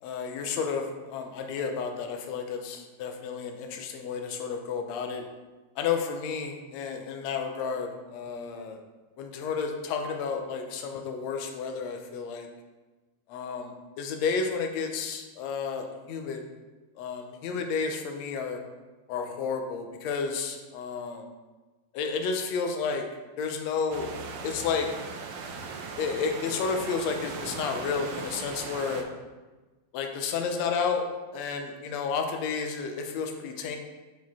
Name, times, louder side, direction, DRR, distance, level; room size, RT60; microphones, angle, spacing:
voice 1, 0.0-5.2 5.8-8.8 9.2-12.5 13.3-16.4 17.0-18.6 19.1-21.3 21.9-23.0 23.4-24.1 24.4-24.9 26.0-29.1 29.9-31.1 31.3-33.8, left 5 dB, 75° left, 4 dB, 1.8 m, -31 dB
sound 1, 23.9-29.0, right 5 dB, 75° right, 1.5 m, -38 dB
6.2 x 4.8 x 4.1 m, 1.2 s
omnidirectional pair, 3.3 m